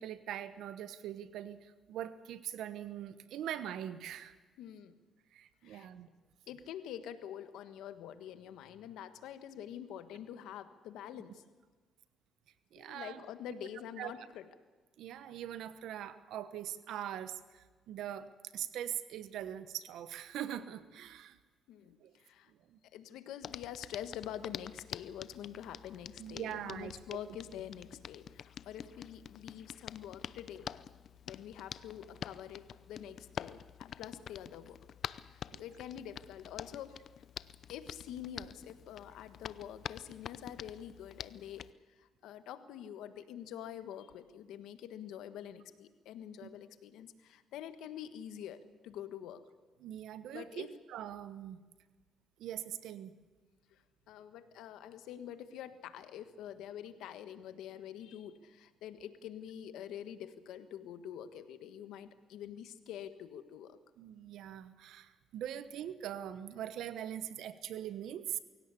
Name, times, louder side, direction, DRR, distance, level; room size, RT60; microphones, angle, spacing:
voice 1, 0.0-4.3 5.3-6.1 12.7-13.2 14.0-14.1 15.0-21.4 22.0-22.1 22.5-22.8 26.2-27.2 35.5-35.6 46.4-46.5 49.8-51.6 52.4-53.1 64.0-68.4, right 10 dB, 80° right, 13 dB, 1.1 m, -42 dB
voice 2, 4.6-5.0 5.6-5.9 6.5-11.4 12.8-14.5 15.3-15.4 21.7-22.5 22.9-30.7 31.3-34.8 35.2-37.0 37.7-41.7 42.0-49.4 50.3-50.7 53.7-63.8, left 10 dB, 90° left, 10 dB, 1.5 m, -46 dB
Hands, 23.4-41.7, left 9 dB, 60° left, 0.6 m, -47 dB
24.0 x 17.0 x 8.4 m, 1.3 s
cardioid pair, 90°, 0 cm